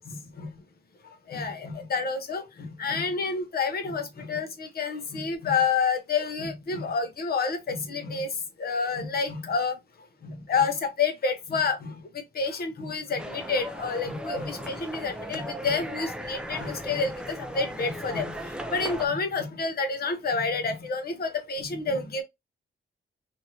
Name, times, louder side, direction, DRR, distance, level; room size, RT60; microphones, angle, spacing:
voice 1, 0.1-0.5 1.0-9.8 10.2-12.0 12.3-22.2, left 4 dB, 45° left, 0.7 m, -29 dB
sound 1, 13.2-19.1, equal, 5° right, 0.3 m, -37 dB
3.0 x 2.7 x 2.6 m
wide cardioid pair, 170°, 21 cm